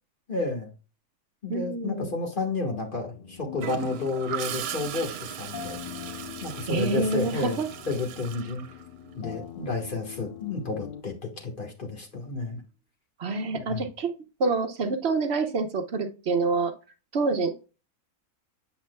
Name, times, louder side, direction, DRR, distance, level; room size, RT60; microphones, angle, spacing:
voice 1, 0.3-0.7 1.4-5.8 6.1-7.6 7.9-8.6 9.1-12.6 13.5-13.9, left 3 dB, 35° left, 2 dB, 1.6 m, -31 dB
voice 2, 1.5-2.2 6.7-7.7 13.2-14.1 14.4-16.7 17.1-17.5, right 3 dB, 50° right, 6 dB, 1.0 m, -27 dB
sound 1, 2.8-11.0, left 10 dB, 90° left, 0.4 m, -42 dB
Gurgling / Toilet flush, 3.6-9.3 11.3-11.6, right 9 dB, 85° right, 1.1 m, -38 dB
8.4 x 5.4 x 2.2 m, 0.32 s
omnidirectional pair, 1.6 m